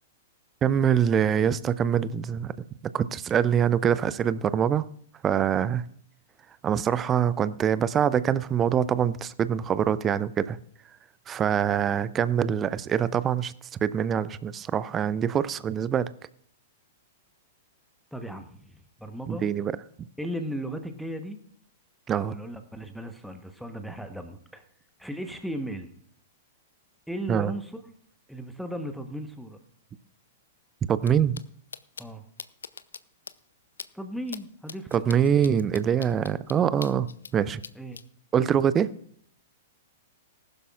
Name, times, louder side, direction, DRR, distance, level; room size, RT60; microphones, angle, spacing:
voice 1, 0.6-2.5 2.9-4.9 5.2-5.8 6.6-10.6 11.3-13.5 13.8-16.1 19.3-19.7 22.1-22.4 27.3-27.5 30.9-31.4 34.9-37.6 38.3-38.9, right 8 dB, 20° right, 17 dB, 0.5 m, -24 dB
voice 2, 18.1-19.5 20.2-21.4 22.1-24.6 25.0-25.9 27.1-27.7 28.3-29.6 32.0-32.2 33.9-35.2 37.7-38.0, equal, ahead, 6 dB, 1.1 m, -36 dB
sound 1, 31.0-31.1 31.3-31.4 31.7-32.0 32.4-33.0 33.3-33.4 33.8-33.9 34.3-34.4 34.7-37.3 37.6-38.0, left 5 dB, 70° left, 0.5 m, -41 dB
19.5 x 11.5 x 2.4 m, 0.63 s
figure-of-eight pair, 105°, 0 cm